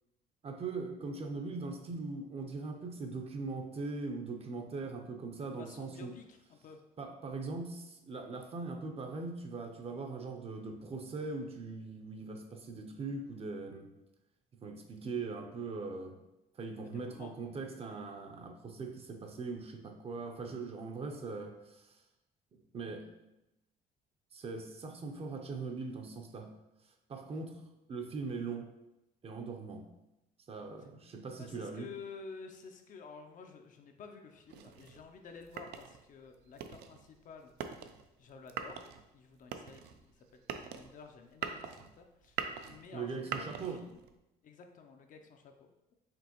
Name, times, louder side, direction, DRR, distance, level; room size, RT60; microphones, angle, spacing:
voice 1, 0.4-6.1 7.0-13.9 14.6-16.2 16.5-22.0 22.5-23.1 24.3-26.5 27.1-27.6 27.9-28.7 29.2-29.9 30.5-31.9 42.9-43.8, right 4 dB, 35° right, 4 dB, 0.6 m, -41 dB
voice 2, 5.6-6.8 16.8-17.3 31.4-37.9 38.2-38.9 39.1-44.0 44.4-45.9, left 5 dB, 50° left, 4 dB, 0.5 m, -52 dB
sound 1, 34.5-44.2, right 8 dB, 80° right, 0.4 m, -44 dB
5.1 x 3.0 x 2.9 m, 0.92 s
cardioid pair, 110°, 17 cm